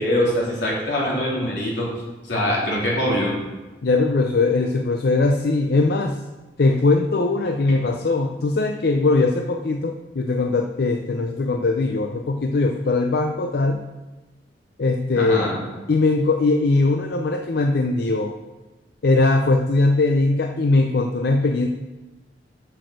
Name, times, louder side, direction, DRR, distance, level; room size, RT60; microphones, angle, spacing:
voice 1, 0.0-1.9 2.2-3.3 15.2-15.6, equal, 85° left, -5 dB, 3.4 m, -23 dB
voice 2, 3.8-6.2 6.6-13.9 14.8-15.5 15.9-18.3 19.0-21.7, left 3 dB, 60° left, 4 dB, 0.5 m, -20 dB
7.9 x 6.5 x 6.4 m, 1.2 s
head